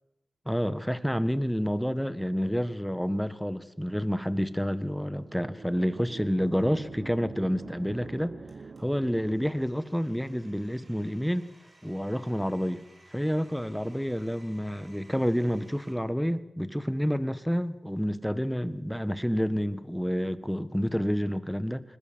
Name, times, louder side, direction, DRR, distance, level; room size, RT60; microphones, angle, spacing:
voice 1, 0.4-8.3 8.8-11.5 11.8-12.8 13.1-21.8, equal, ahead, 13 dB, 1.4 m, -29 dB
sound 1, 5.1-10.0, right 4 dB, 60° right, 1.0 m, -45 dB
Domestic sounds home sounds, 8.5-15.9, right 1 dB, 45° right, 6.4 m, -59 dB
21.5 x 20.0 x 7.4 m, 0.87 s
cardioid pair, 60°, 0 cm